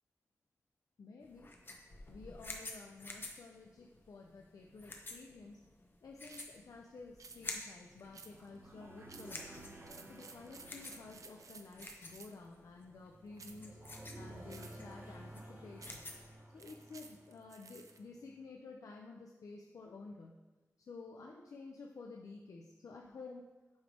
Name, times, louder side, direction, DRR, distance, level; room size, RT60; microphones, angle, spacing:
voice 1, 1.0-1.5 2.1-5.6 6.0-9.7 10.1-13.8 14.2-16.0 16.5-20.4 20.8-23.5, left 3 dB, 90° left, 0 dB, 0.5 m, -52 dB
sound 1, 1.2-16.4, left 2 dB, 40° left, 0.8 m, -50 dB
sound 2, 6.3-6.6 7.2-7.4 8.1-8.6 9.1-9.4 9.8-12.5 13.4-13.7 14.5-14.9 15.8-16.2 16.6-18.0, right 5 dB, 75° right, 0.5 m, -55 dB
sound 3, 7.9-18.0, right 1 dB, 35° right, 1.2 m, -54 dB
8.0 x 3.4 x 5.2 m, 1.2 s
wide cardioid pair, 110°, 6 cm